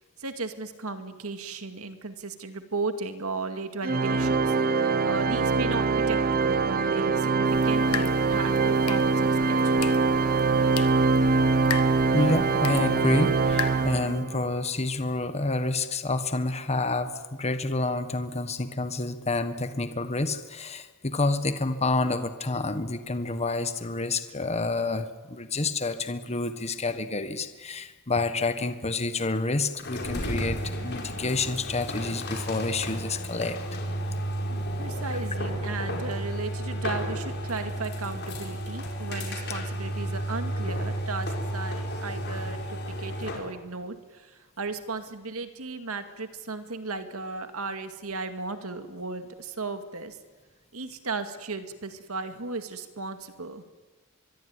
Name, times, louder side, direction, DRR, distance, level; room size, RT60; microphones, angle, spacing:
voice 1, 0.2-4.5 5.0-10.0 34.5-50.2 50.7-53.6, right 3 dB, 70° right, 8 dB, 2.2 m, -35 dB
Organ, 3.8-14.5, right 4 dB, 40° right, 1.1 m, -23 dB
sound 1, 7.4-14.0, left 8 dB, 75° left, 1.6 m, -38 dB
voice 2, 12.1-33.6, left 3 dB, 30° left, 10 dB, 1.4 m, -28 dB
sound 2, 29.8-43.5, equal, 50° left, 5.4 m, -32 dB
24.5 x 22.5 x 9.7 m, 1.2 s
head